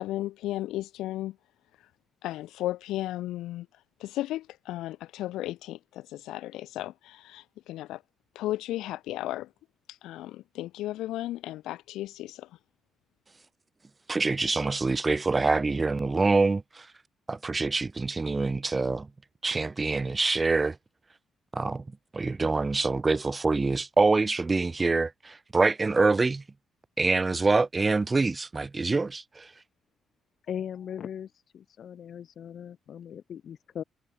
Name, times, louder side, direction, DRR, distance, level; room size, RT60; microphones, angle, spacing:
voice 1, 0.0-1.3 1.8-1.9 2.2-3.7 4.0-8.0 8.3-9.5 9.9-12.6, left 15 dB, 90° left, 1.0 m, -35 dB
voice 2, 14.1-16.9 17.3-19.1 19.4-20.8 21.5-21.8 22.1-26.4 27.0-29.5, right 3 dB, 25° right, 0.5 m, -25 dB
voice 3, 30.4-33.8, left 9 dB, 60° left, 3.2 m, -39 dB
cardioid pair, 90°, 0 cm